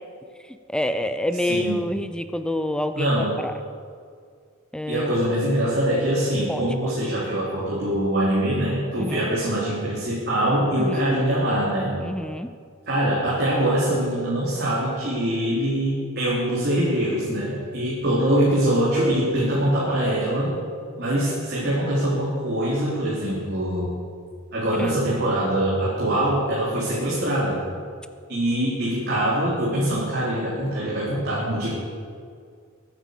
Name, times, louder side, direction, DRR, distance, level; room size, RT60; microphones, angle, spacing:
voice 1, 0.7-3.5 4.7-5.2 6.5-6.6 9.0-9.3 10.8-11.1 12.0-12.5 24.8-25.0, left 1 dB, 5° left, 9 dB, 0.6 m, -27 dB
voice 2, 1.4-1.9 3.0-3.4 4.9-11.9 12.9-20.5 21.0-23.9 24.5-27.6 28.3-31.7, right 1 dB, 50° right, -7 dB, 3.8 m, -23 dB
23.0 x 9.3 x 6.7 m, 2.1 s
head